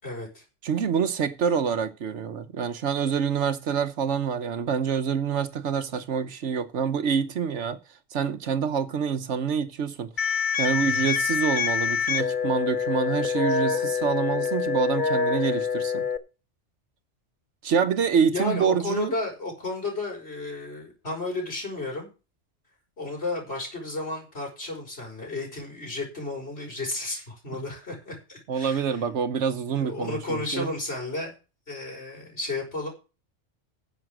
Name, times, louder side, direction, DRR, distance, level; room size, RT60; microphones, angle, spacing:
voice 1, 0.0-0.4 10.8-11.1 18.1-22.1 23.0-29.0 29.7-31.3 31.7-32.9, left 2 dB, 65° left, 5.8 m, -33 dB
voice 2, 0.6-7.8 8.1-10.1 10.6-16.1 17.6-19.1 28.5-30.7, right 7 dB, 85° right, 1.2 m, -26 dB
sound 1, 10.2-16.2, left 6 dB, 45° left, 1.0 m, -26 dB
11.0 x 7.4 x 6.4 m
omnidirectional pair, 1.2 m